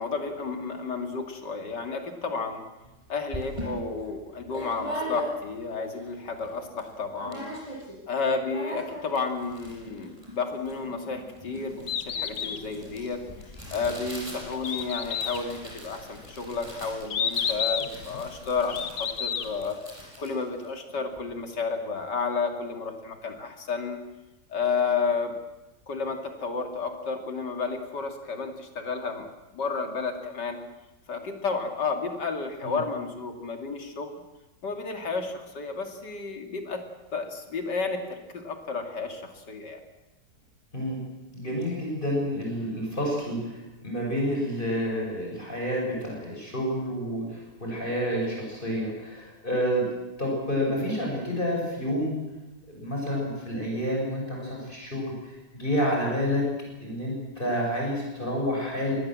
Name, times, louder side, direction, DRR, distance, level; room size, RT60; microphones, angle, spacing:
voice 1, 0.0-2.6 3.1-7.5 8.1-13.2 13.7-19.8 20.2-24.0 24.5-25.4 25.9-29.3 29.5-30.6 31.1-34.1 34.6-36.8 37.1-39.8, left 4 dB, 90° left, 5 dB, 3.1 m, -31 dB
sound 1, 2.8-2.9 3.3-5.7 6.1-6.2 6.4-6.9 7.2-8.0 8.2-21.3, equal, 15° right, 6.7 m, -40 dB
Bird, 11.7-19.7, left 7 dB, 60° left, 1.5 m, -32 dB
voice 2, 41.3-49.9 50.2-52.2 52.7-56.5 56.8-58.9, equal, 30° left, -2 dB, 6.6 m, -29 dB
24.0 x 19.0 x 7.6 m, 1.0 s
omnidirectional pair, 1.8 m